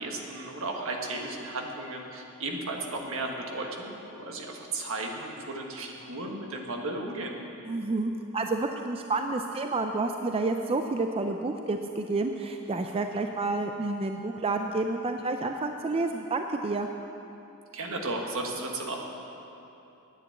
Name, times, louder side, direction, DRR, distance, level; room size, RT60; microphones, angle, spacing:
voice 1, 0.0-7.4 17.7-19.0, right 2 dB, 65° right, 1 dB, 1.6 m, -34 dB
voice 2, 7.6-16.9, right 3 dB, 25° right, 5 dB, 0.4 m, -29 dB
10.0 x 9.3 x 8.2 m, 2.9 s
head